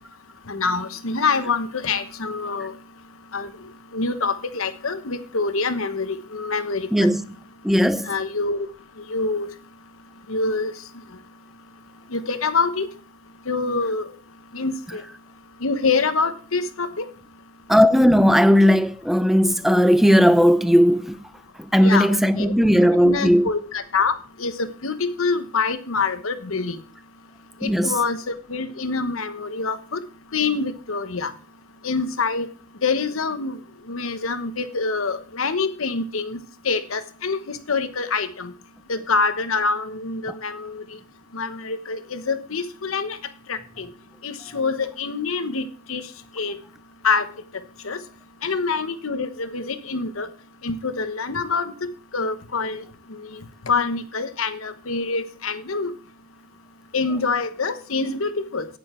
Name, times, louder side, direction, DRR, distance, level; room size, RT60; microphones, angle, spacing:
voice 1, 0.5-2.7 3.3-3.5 3.9-7.1 8.0-8.7 9.1-9.5 10.3-10.7 12.1-12.9 13.5-14.1 14.5-15.0 15.6-17.0 21.8-22.5 22.9-26.8 27.6-30.0 30.3-31.3 31.8-32.5 32.8-33.6 33.9-38.5 38.9-41.0 41.3-43.2 43.5-43.9 44.2-46.0 46.4-46.6 47.0-47.3 47.8-48.0 48.4-50.3 50.6-53.4 53.7-55.9 56.9-58.7, left 4 dB, 70° left, 1.1 m, -26 dB
voice 2, 6.9-7.2 7.6-8.1 17.7-21.2 21.6-23.5 27.6-28.0, equal, ahead, 0.6 m, -17 dB
9.7 x 9.4 x 4.4 m
head